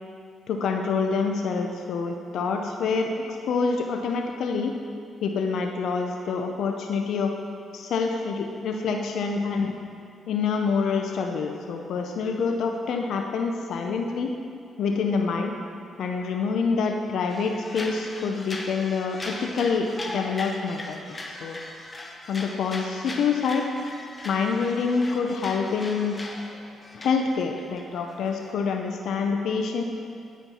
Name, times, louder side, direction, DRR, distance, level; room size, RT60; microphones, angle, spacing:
voice 1, 0.5-4.7 5.2-7.3 7.7-9.7 10.3-14.3 14.8-15.5 16.0-19.9 20.1-21.6 22.3-23.7 24.2-26.2 26.9-29.8, left 5 dB, 75° left, 3 dB, 0.5 m, -26 dB
sound 1, 17.3-28.5, left 2 dB, 30° left, 0.9 m, -39 dB
9.0 x 4.6 x 5.4 m, 2.4 s
cardioid pair, 75°, 0 cm